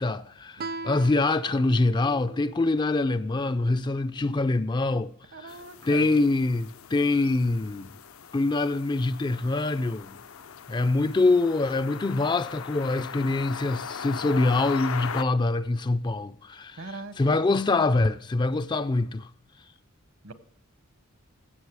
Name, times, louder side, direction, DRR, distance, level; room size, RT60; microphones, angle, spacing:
voice 1, 0.0-5.1 5.4-5.6 5.8-7.9 8.3-10.2 10.7-19.3, left 2 dB, 20° left, 0.4 m, -25 dB
Guitar, 0.6-3.8, right 3 dB, 45° right, 0.5 m, -41 dB
voice 2, 5.3-6.1 16.8-17.4 20.2-20.3, right 3 dB, 70° right, 1.3 m, -40 dB
sound 1, 5.5-15.2, left 7 dB, 75° left, 0.6 m, -39 dB
16.0 x 7.6 x 4.7 m
head